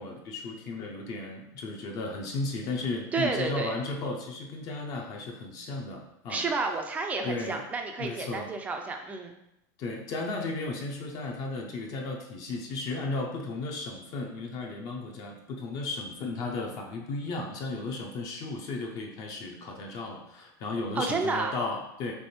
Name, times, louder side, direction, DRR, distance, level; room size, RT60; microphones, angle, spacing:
voice 1, 0.0-6.4 7.2-7.6 8.0-8.5 9.8-22.1, left 3 dB, 40° left, 1 dB, 0.7 m, -35 dB
voice 2, 3.1-3.8 6.3-9.3 21.0-21.5, right 3 dB, 15° right, 4 dB, 0.4 m, -30 dB
3.5 x 3.1 x 4.3 m, 0.83 s
supercardioid pair, 160°, 10 cm